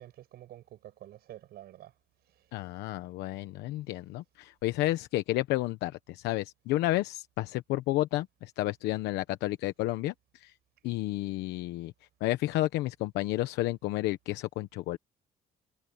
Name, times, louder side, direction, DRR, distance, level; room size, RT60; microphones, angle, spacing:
voice 1, 0.0-1.9 2.3-2.5, right 13 dB, 70° right, 7.8 m, -49 dB
voice 2, 2.5-10.5 10.8-11.9 12.2-15.0, left 16 dB, 90° left, 1.0 m, -31 dB
cardioid pair, 110°, 17 cm